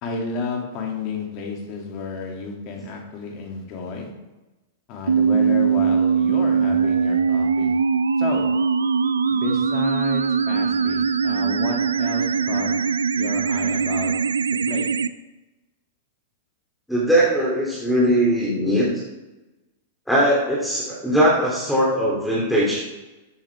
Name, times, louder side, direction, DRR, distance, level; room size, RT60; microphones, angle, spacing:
voice 1, 0.0-4.1 4.9-7.7 8.2-8.5 9.3-12.7 13.1-14.1 14.5-14.9, left 5 dB, 40° left, 1 dB, 2.6 m, -31 dB
sound 1, 5.1-15.1, right 6 dB, 75° right, 0.4 m, -21 dB
voice 2, 16.9-18.9 20.1-22.8, equal, ahead, -6 dB, 2.9 m, -20 dB
14.0 x 8.6 x 3.5 m, 1.1 s
figure-of-eight pair, 95°, 0 cm